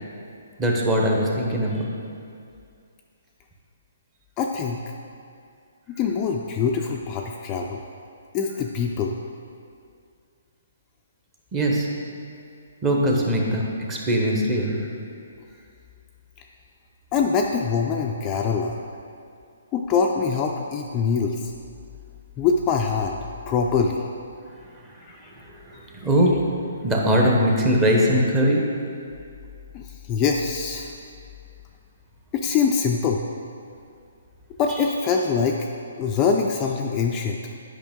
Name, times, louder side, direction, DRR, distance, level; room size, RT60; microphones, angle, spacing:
voice 1, 0.6-1.9 11.5-11.9 12.8-14.9 25.3-26.3 26.8-28.6 34.7-34.8, equal, 15° right, -2 dB, 0.9 m, -21 dB
voice 2, 4.4-4.8 5.9-7.8 8.3-9.1 17.1-18.7 19.7-21.5 22.4-23.2 23.5-24.0 25.0-25.2 29.7-30.9 32.3-33.2 34.6-35.6 36.0-37.4, left 5 dB, 20° left, 1 dB, 0.4 m, -23 dB
8.5 x 5.4 x 3.6 m, 2.4 s
hypercardioid pair, 155°, 0 cm